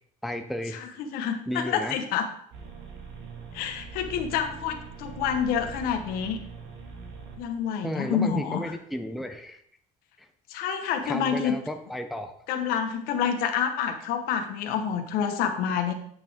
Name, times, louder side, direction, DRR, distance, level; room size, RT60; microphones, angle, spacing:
voice 1, 0.2-0.8 1.5-2.0 7.8-9.6 10.2-10.3 11.0-12.3, equal, ahead, 5 dB, 0.5 m, -33 dB
voice 2, 0.8-2.3 3.5-6.4 7.4-8.6 10.5-11.5 12.5-15.9, left 8 dB, 70° left, 6 dB, 1.2 m, -28 dB
sound 1, 2.5-7.6, right 5 dB, 80° right, 2.0 m, -42 dB
9.0 x 5.8 x 3.5 m, 0.67 s
cardioid pair, 155°, 16 cm